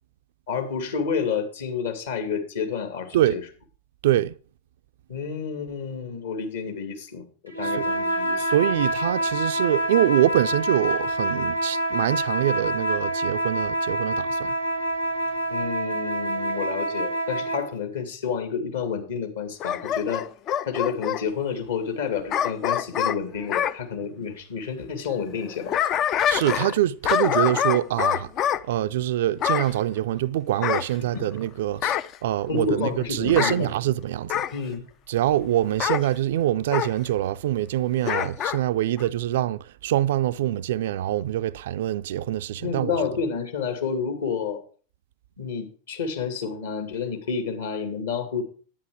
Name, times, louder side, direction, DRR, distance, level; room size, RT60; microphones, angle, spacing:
voice 1, 0.5-3.4 5.1-7.2 7.6-8.5 15.5-20.3 20.7-25.8 31.1-31.2 31.8-32.0 32.5-33.7 34.5-34.8 42.6-44.6 45.4-48.4, left 6 dB, 60° left, 2.5 m, -29 dB
voice 2, 4.0-4.3 7.6-7.8 8.4-14.5 26.3-28.3 28.7-31.8 32.2-34.4 35.1-42.9, right 13 dB, 55° right, 0.4 m, -24 dB
sound 1, 7.5-17.7, right 1 dB, 90° left, 1.7 m, -27 dB
Bark / Growling, 19.6-21.2 22.3-23.8 25.4-26.8 27.0-28.6 29.4-29.7 30.6-31.4 31.8-32.2 33.3-33.6 34.3-34.6 35.8-36.1 36.7-36.9 38.0-38.6 39.0-39.1, left 10 dB, 35° left, 0.4 m, -25 dB
10.5 x 9.6 x 4.9 m
figure-of-eight pair, 90°, 0 cm